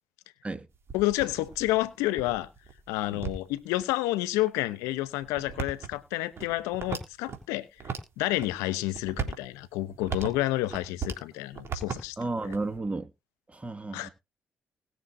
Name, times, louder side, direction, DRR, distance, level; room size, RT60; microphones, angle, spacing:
sound 1, 0.7-3.8 4.5-4.6 5.2-7.4 7.8-8.5 8.9-11.2 11.5-12.8, right 6 dB, 55° right, 3.5 m, -38 dB
voice 1, 0.9-2.5 2.9-7.7 8.2-12.2 12.4-12.5 13.9-14.1, left 17 dB, 85° left, 0.9 m, -29 dB
voice 2, 12.2-13.1 13.5-14.1, right 3 dB, 25° right, 2.0 m, -33 dB
20.5 x 6.8 x 2.7 m
hypercardioid pair, 50°, 5 cm